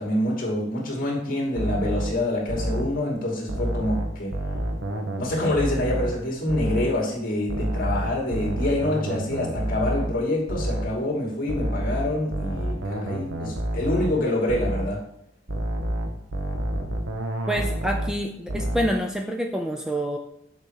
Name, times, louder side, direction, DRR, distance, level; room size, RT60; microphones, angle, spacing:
voice 1, 0.0-4.4 5.2-15.1, left 1 dB, 50° left, -2 dB, 2.5 m, -26 dB
sound 1, 1.6-3.0 3.5-6.2 6.5-7.0 7.5-11.0 11.5-14.2 14.5-15.0 15.5-18.2 18.5-19.0, right 1 dB, 85° right, 1.1 m, -29 dB
voice 2, 17.5-20.2, equal, 5° right, 2 dB, 0.5 m, -27 dB
6.7 x 4.4 x 6.4 m, 0.76 s
head